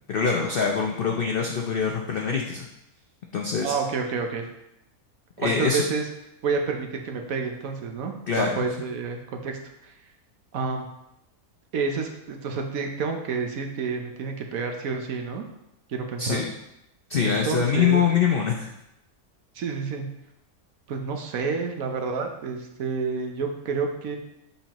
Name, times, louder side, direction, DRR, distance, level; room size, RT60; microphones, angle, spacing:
voice 1, 0.1-2.7 3.3-3.7 5.4-5.8 8.3-8.6 16.2-16.5 17.1-18.7, left 6 dB, 60° left, 1 dB, 0.6 m, -24 dB
voice 2, 3.6-4.5 5.4-6.1 6.4-9.9 10.5-10.9 11.7-15.4 15.9-16.4 17.2-18.0 19.5-20.1 20.9-24.2, right 5 dB, 75° right, 3 dB, 1.2 m, -29 dB
6.9 x 5.5 x 3.0 m, 0.83 s
omnidirectional pair, 1.5 m